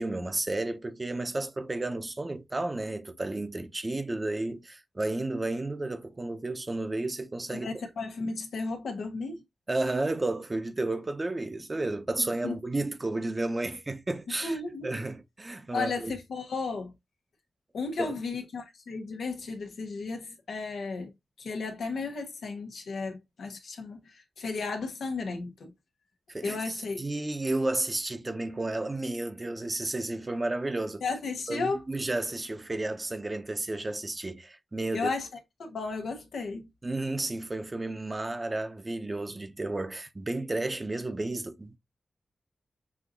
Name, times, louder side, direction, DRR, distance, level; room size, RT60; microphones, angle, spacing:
voice 1, 0.0-7.7 9.7-14.6 14.8-16.1 18.0-18.2 26.3-26.6 27.0-31.0 31.5-35.1 36.8-41.8, right 2 dB, 35° right, 0.8 m, -32 dB
voice 2, 7.5-9.4 12.2-12.5 14.4-14.9 15.7-16.9 17.7-21.1 21.4-25.7 26.4-27.0 31.0-31.8 34.9-35.3 35.6-36.7, left 4 dB, 85° left, 1.0 m, -34 dB
6.2 x 2.7 x 2.6 m
cardioid pair, 45°, 0 cm